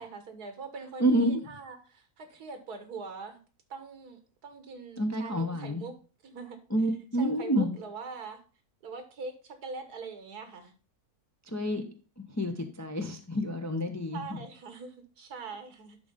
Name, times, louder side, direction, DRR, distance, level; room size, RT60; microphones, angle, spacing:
voice 1, 0.0-3.4 3.7-6.0 6.2-6.6 7.2-8.4 8.8-10.7 14.1-16.0, right 4 dB, 85° right, 9 dB, 1.9 m, -43 dB
voice 2, 1.0-1.4 5.0-5.8 6.7-7.7 11.5-11.8 12.2-14.2, equal, 15° left, 4 dB, 0.6 m, -28 dB
11.0 x 4.0 x 5.1 m, 0.36 s
omnidirectional pair, 1.6 m